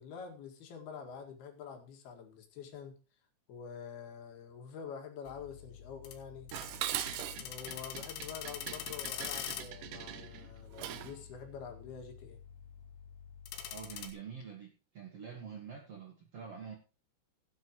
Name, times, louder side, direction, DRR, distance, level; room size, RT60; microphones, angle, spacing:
voice 1, 0.0-3.0 3.5-6.5 7.4-12.4, left 6 dB, 65° left, 3 dB, 3.8 m, -47 dB
sound 1, 5.3-14.1, left 9 dB, 90° left, 3.7 m, -45 dB
Dishes pots and pans, 6.5-11.2, right 12 dB, 85° right, 1.8 m, -41 dB
voice 2, 13.7-16.7, right 7 dB, 60° right, 2 dB, 1.6 m, -46 dB
16.0 x 9.7 x 3.0 m, 0.33 s
omnidirectional pair, 5.0 m